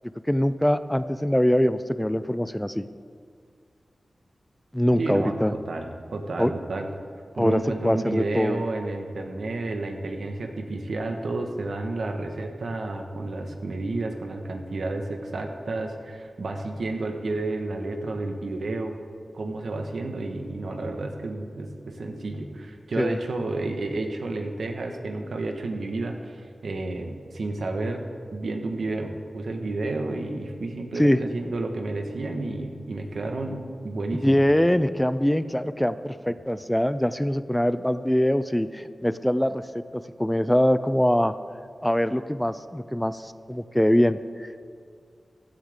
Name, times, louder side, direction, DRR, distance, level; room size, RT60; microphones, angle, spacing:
voice 1, 0.2-2.9 4.7-5.5 6.4-6.5 7.4-8.6 23.0-23.2 31.0-31.2 34.2-39.6 39.9-41.3 41.8-44.7, equal, 5° left, 13 dB, 0.4 m, -23 dB
voice 2, 5.0-6.9 7.3-18.9 19.3-28.0 28.3-34.5, right 2 dB, 85° right, 3 dB, 1.5 m, -31 dB
16.0 x 13.0 x 3.7 m, 2.3 s
wide cardioid pair, 90°, 0 cm